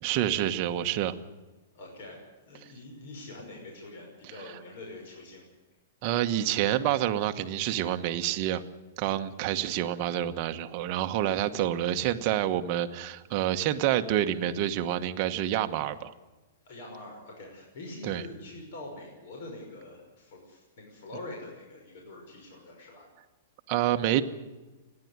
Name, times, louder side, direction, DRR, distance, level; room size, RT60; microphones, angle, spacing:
voice 1, 0.0-1.1 6.0-8.6 9.0-16.1 18.0-18.2 23.7-24.2, right 12 dB, 30° right, 8 dB, 1.1 m, -28 dB
voice 2, 1.7-2.2 2.5-5.5 16.7-23.0, left 2 dB, 50° left, 0 dB, 5.7 m, -44 dB
29.0 x 10.5 x 9.5 m, 1.2 s
hypercardioid pair, 170°, 0 cm